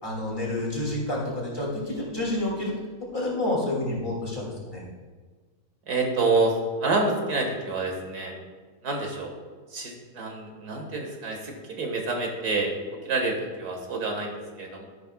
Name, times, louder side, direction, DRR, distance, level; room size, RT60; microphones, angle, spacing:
voice 1, 0.0-2.7 3.1-4.8, left 1 dB, 35° left, -5 dB, 3.0 m, -29 dB
voice 2, 5.9-8.3 8.8-9.3 9.7-12.7 13.0-14.9, right 3 dB, 85° right, 2 dB, 2.2 m, -28 dB
12.5 x 11.0 x 2.4 m, 1.5 s
omnidirectional pair, 1.6 m